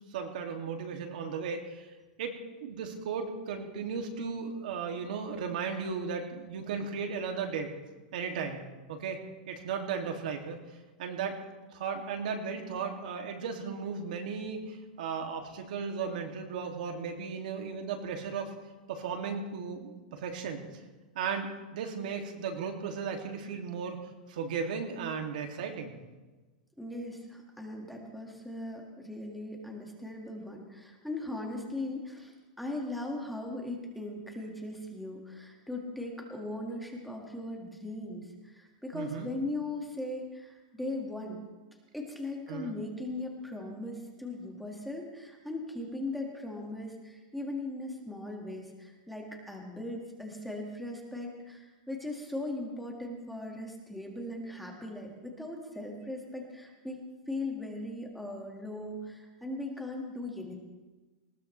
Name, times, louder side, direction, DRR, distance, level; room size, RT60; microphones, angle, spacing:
voice 1, 0.1-1.9 2.2-7.7 8.1-8.6 8.9-9.2 9.5-10.6 11.0-11.4 11.7-18.5 18.9-20.6 21.1-24.0 24.3-25.9 38.9-39.3 42.5-42.8, right 5 dB, 70° right, 3 dB, 2.5 m, -35 dB
voice 2, 26.8-41.4 41.9-60.6, left 2 dB, ahead, -1 dB, 1.9 m, -39 dB
19.5 x 18.5 x 3.3 m, 1.2 s
supercardioid pair, 165°, 5 cm